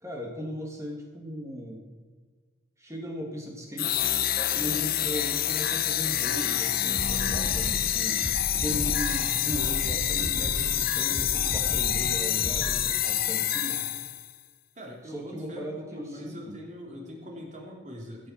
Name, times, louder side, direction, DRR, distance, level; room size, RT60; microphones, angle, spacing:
voice 1, 0.0-1.8 2.8-4.0 4.3-8.2 8.6-13.8 15.0-16.6, equal, 15° right, 0 dB, 1.7 m, -37 dB
sound 1, 3.8-14.3, left 11 dB, 45° left, 0.6 m, -27 dB
sound 2, 6.9-12.7, equal, 15° left, 3.2 m, -35 dB
voice 2, 14.7-18.3, equal, 35° right, -2 dB, 2.9 m, -43 dB
15.5 x 8.7 x 6.0 m, 1.4 s
head